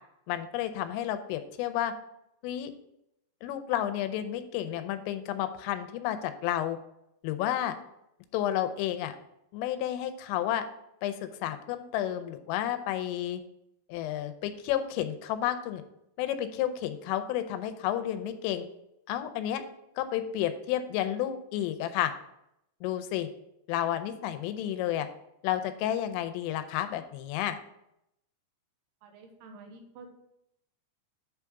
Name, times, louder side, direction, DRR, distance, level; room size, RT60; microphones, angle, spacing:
voice 1, 0.3-1.9 2.4-2.7 3.4-6.8 7.2-7.7 8.3-9.2 9.5-10.6 11.0-13.4 13.9-15.8 16.2-18.7 19.1-19.6 20.0-22.1 22.8-23.3 23.7-25.1 25.4-27.6, left 11 dB, 85° left, 9 dB, 3.2 m, -31 dB
voice 2, 29.0-30.1, right 3 dB, 80° right, 4 dB, 3.2 m, -49 dB
8.2 x 3.6 x 5.8 m, 0.81 s
omnidirectional pair, 5.7 m